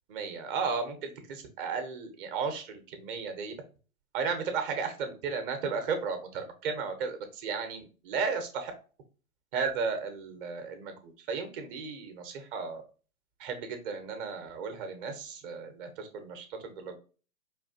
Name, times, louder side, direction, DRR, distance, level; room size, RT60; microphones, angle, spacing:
voice 1, 0.1-3.5 4.1-8.7 9.5-12.8 13.4-17.0, right 5 dB, 40° right, 7 dB, 1.1 m, -34 dB
4.8 x 2.9 x 2.8 m, 0.36 s
hypercardioid pair, 125°, 42 cm